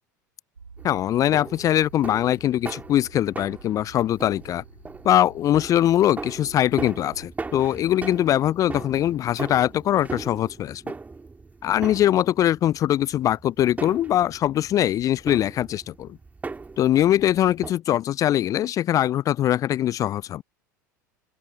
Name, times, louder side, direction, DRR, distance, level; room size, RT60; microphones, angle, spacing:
sound 1, 0.6-7.3, right 5 dB, 85° right, 4.2 m, -49 dB
voice 1, 0.8-4.6 5.0-10.9 11.6-16.2 16.8-20.4, left 12 dB, 35° left, 0.4 m, -22 dB
sound 2, 0.8-17.7, right 3 dB, 15° right, 2.7 m, -39 dB
open air
figure-of-eight pair, 75°, 10 cm